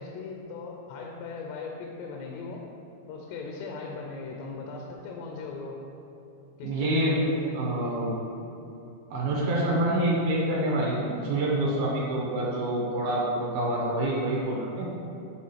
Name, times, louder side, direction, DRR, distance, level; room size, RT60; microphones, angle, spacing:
voice 1, 0.0-2.6 3.1-5.8 6.6-7.6, left 4 dB, 80° left, 1 dB, 2.7 m, -38 dB
voice 2, 6.6-7.2 7.5-8.1 9.1-14.9, right 1 dB, 70° right, -4 dB, 2.5 m, -27 dB
9.6 x 3.6 x 5.7 m, 2.9 s
omnidirectional pair, 5.1 m